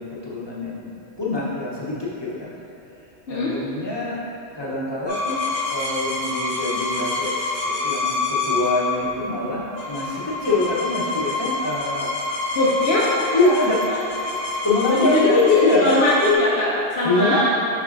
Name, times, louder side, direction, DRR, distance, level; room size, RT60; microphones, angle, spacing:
voice 1, 0.0-2.5 3.3-4.2 4.6-5.4 5.7-7.4 7.6-12.1 13.3-13.8 14.6-15.9 17.0-17.5, left 2 dB, 25° left, -7 dB, 0.9 m, -24 dB
sound 1, 5.1-16.3, left 3 dB, 85° left, 1.8 m, -27 dB
voice 2, 12.6-13.1 13.9-14.0 14.9-15.2 15.5-17.5, left 2 dB, 65° left, -6 dB, 0.9 m, -20 dB
6.9 x 5.4 x 2.6 m, 2.9 s
omnidirectional pair, 1.2 m